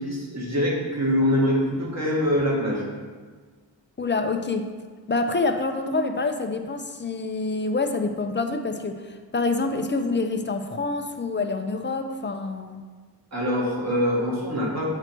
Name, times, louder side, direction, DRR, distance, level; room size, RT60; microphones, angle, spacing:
voice 1, 0.0-2.8 13.3-14.8, equal, 35° right, -4 dB, 2.0 m, -24 dB
voice 2, 4.0-4.7 5.1-12.8, left 3 dB, 25° left, 6 dB, 0.6 m, -27 dB
7.9 x 4.7 x 4.5 m, 1.5 s
wide cardioid pair, 90°, 45 cm